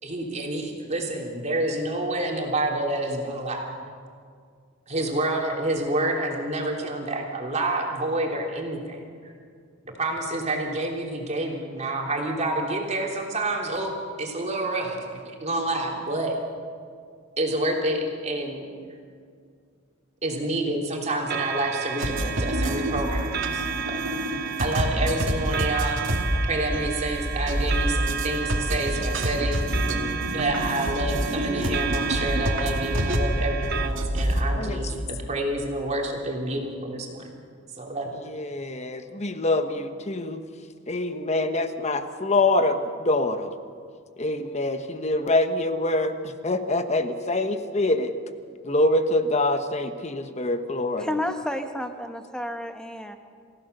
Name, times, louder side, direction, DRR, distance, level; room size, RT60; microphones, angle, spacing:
voice 1, 0.0-3.7 4.9-9.3 9.8-16.4 17.4-18.7 20.2-24.0 24.6-26.1 26.5-29.6 30.3-37.3 37.7-38.1, right 1 dB, 35° right, 0 dB, 3.2 m, -28 dB
sound 1, 21.3-33.9, right 7 dB, 50° right, 0.9 m, -33 dB
sound 2, 22.0-34.4, equal, 65° right, 2.4 m, -27 dB
voice 2, 38.3-40.4 40.9-43.5 44.2-46.1 46.4-48.1 48.6-51.1, left 2 dB, 35° left, 9 dB, 1.2 m, -25 dB
voice 3, 51.0-53.2, left 1 dB, 5° left, 6 dB, 1.2 m, -31 dB
27.0 x 15.5 x 6.8 m, 2.2 s
head